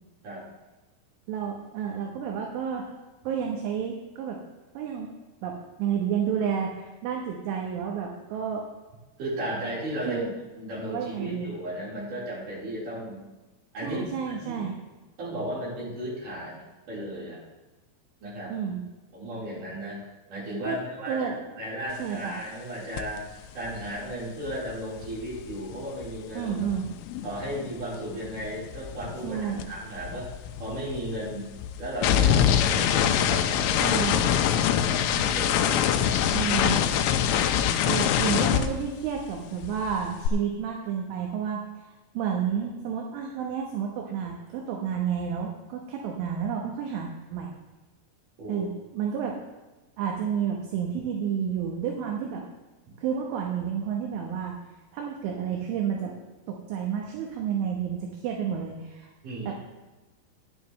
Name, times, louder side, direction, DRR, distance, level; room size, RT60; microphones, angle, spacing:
voice 1, 1.3-2.9 3.2-4.4 4.7-5.1 5.4-8.7 10.1-10.3 10.9-11.5 13.8-14.8 18.5-18.8 20.6-20.8 21.1-21.4 22.0-22.4 26.3-26.9 29.2-29.7 33.8-34.3 36.3-36.8 37.9-47.5 48.5-49.4 50.0-52.4 53.0-54.5 54.9-56.1 56.5-59.1 59.5-59.6, right 8 dB, 75° right, 1 dB, 3.4 m, -30 dB
voice 2, 9.2-10.3 10.6-13.2 13.7-14.6 15.2-17.4 18.2-18.5 19.1-20.0 20.3-21.3 21.6-26.7 27.2-30.3 30.6-31.4 31.8-34.0 34.2-36.4 36.8-36.9 48.4-48.7 59.2-59.5, equal, 40° right, -7 dB, 5.1 m, -35 dB
sound 1, 23.0-23.2 23.4-27.8 28.1-39.4 39.6-40.3, left 9 dB, 85° left, 3.1 m, -25 dB
17.0 x 10.5 x 3.1 m, 1.2 s
omnidirectional pair, 5.9 m